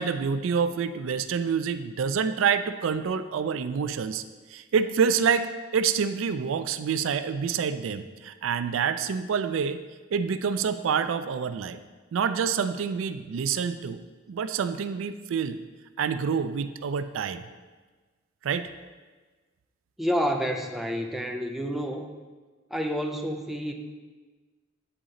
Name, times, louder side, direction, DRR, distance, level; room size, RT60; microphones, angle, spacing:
voice 1, 0.0-4.2 4.5-9.8 10.1-11.8 12.1-15.6 16.0-17.4 18.4-18.7, right 6 dB, 80° right, 11 dB, 0.3 m, -27 dB
voice 2, 20.0-22.1 22.7-23.7, equal, ahead, 2 dB, 0.4 m, -29 dB
9.1 x 4.0 x 3.8 m, 1.3 s
head